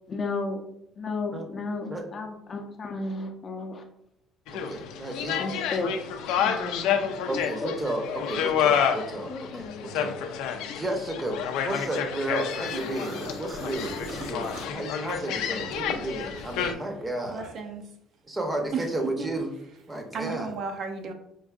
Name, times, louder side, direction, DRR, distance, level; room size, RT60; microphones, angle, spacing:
voice 1, 0.1-0.6 1.0-3.8 5.4-6.0 6.4-7.0 7.3-7.7 9.3-9.8, left 3 dB, 35° left, 3 dB, 0.5 m, -33 dB
sound 1, 4.5-16.7, left 8 dB, 90° left, 0.4 m, -29 dB
voice 2, 4.5-5.5 7.3-10.5 10.7-17.4 18.3-19.5 19.9-20.5, right 1 dB, 15° right, 3 dB, 0.7 m, -33 dB
sound 2, 12.4-15.9 16.3-17.8, right 1 dB, 80° right, 1.3 m, -41 dB
voice 3, 17.3-17.8 18.7-18.8 19.2-19.3 20.1-21.1, right 5 dB, 55° right, 5 dB, 0.5 m, -33 dB
4.5 x 2.5 x 2.4 m, 0.78 s
cardioid pair, 130°, 0 cm